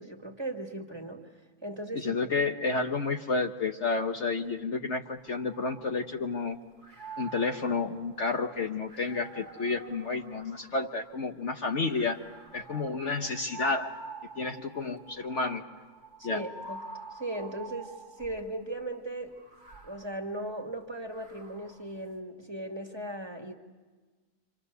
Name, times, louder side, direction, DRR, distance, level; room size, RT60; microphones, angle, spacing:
voice 1, 0.0-1.3 1.6-2.2 16.2-16.8 17.1-19.4 19.8-23.5, right 1 dB, 15° right, 3 dB, 2.0 m, -38 dB
voice 2, 1.9-6.6 7.2-12.2 12.5-13.9 14.3-15.6 16.2-16.4, left 4 dB, 55° left, 4 dB, 1.3 m, -30 dB
sound 1, 5.2-6.4 6.8-11.2 11.9-18.5 19.3-21.9, right 4 dB, 30° right, 1.6 m, -47 dB
29.5 x 26.0 x 6.8 m, 1.3 s
omnidirectional pair, 1.6 m